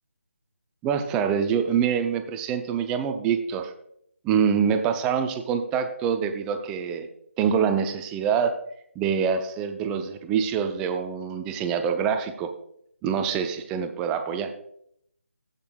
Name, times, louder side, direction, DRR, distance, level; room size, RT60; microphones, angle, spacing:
voice 1, 0.8-3.7 4.2-7.1 7.4-8.6 9.0-12.5 13.0-14.5, right 7 dB, 10° right, 7 dB, 0.4 m, -25 dB
15.0 x 8.1 x 2.3 m, 0.71 s
figure-of-eight pair, 155°, 8 cm